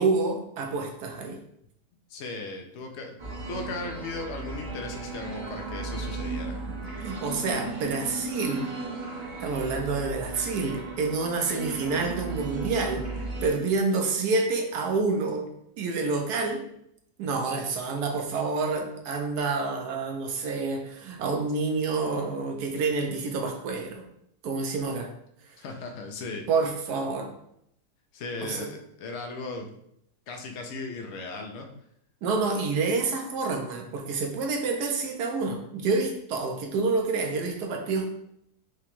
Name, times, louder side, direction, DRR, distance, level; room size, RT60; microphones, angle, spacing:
voice 1, 0.0-1.4 7.0-8.7 9.4-13.0 13.4-15.5 15.8-16.6 17.2-24.0 24.4-25.1 26.5-27.3 28.4-28.7 32.2-38.1, right 4 dB, 75° right, 3 dB, 1.1 m, -28 dB
voice 2, 2.1-3.2 3.5-6.6 25.6-26.5 28.1-29.7 30.3-31.7, left 3 dB, 75° left, 3 dB, 0.6 m, -37 dB
sound 1, 3.2-13.5, right 3 dB, 45° right, 0.6 m, -35 dB
4.8 x 2.2 x 2.9 m, 0.74 s
omnidirectional pair, 1.8 m